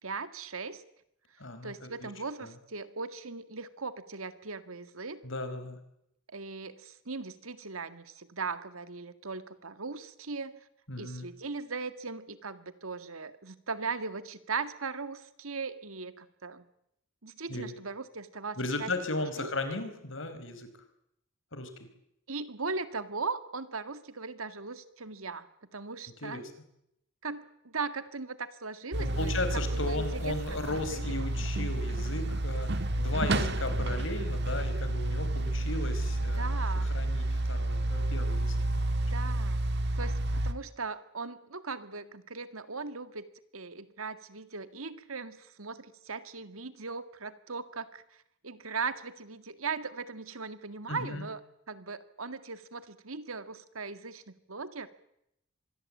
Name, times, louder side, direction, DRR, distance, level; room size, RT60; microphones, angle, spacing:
voice 1, 0.0-0.8 1.6-5.2 6.3-10.7 11.0-16.7 17.2-18.9 19.4-19.8 22.3-25.5 25.7-26.4 27.2-29.3 29.7-30.4 30.7-31.3 36.3-36.9 39.0-39.7 40.0-43.3 43.5-48.2 48.4-51.4 51.7-54.9, right 4 dB, 90° right, 11 dB, 2.0 m, -39 dB
voice 2, 1.4-2.1 2.4-2.5 5.2-5.8 10.9-11.3 17.5-17.7 18.6-20.7 21.5-21.7 26.2-26.5 29.0-36.6 36.9-38.8 50.9-51.3, left 2 dB, 65° left, 9 dB, 4.6 m, -36 dB
sound 1, 28.9-40.5, right 1 dB, 50° right, 1.6 m, -30 dB
25.5 x 21.0 x 8.6 m, 0.78 s
head